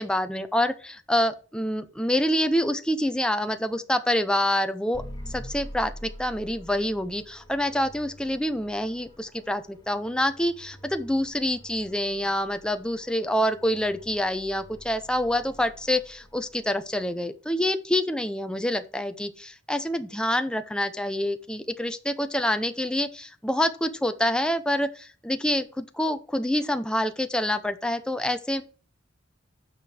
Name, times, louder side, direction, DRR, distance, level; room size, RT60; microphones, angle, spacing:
voice 1, 0.0-28.6, left 1 dB, 5° left, 8 dB, 0.6 m, -27 dB
sound 1, 4.9-17.1, equal, 20° left, 3.3 m, -46 dB
9.2 x 6.0 x 4.7 m, 0.37 s
head